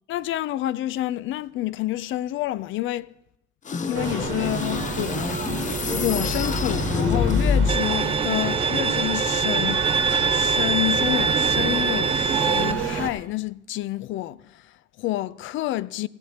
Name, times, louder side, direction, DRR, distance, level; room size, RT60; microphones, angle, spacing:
voice 1, 0.1-3.1 3.8-16.1, left 15 dB, 80° left, 0.4 m, -29 dB
sound 1, 3.7-8.0, left 5 dB, 40° left, 0.7 m, -26 dB
sound 2, 3.9-13.1, right 6 dB, 80° right, 1.4 m, -29 dB
Bowed string instrument, 7.7-12.7, right 5 dB, 30° right, 0.4 m, -23 dB
17.5 x 11.0 x 2.9 m
cardioid pair, 90°, 20 cm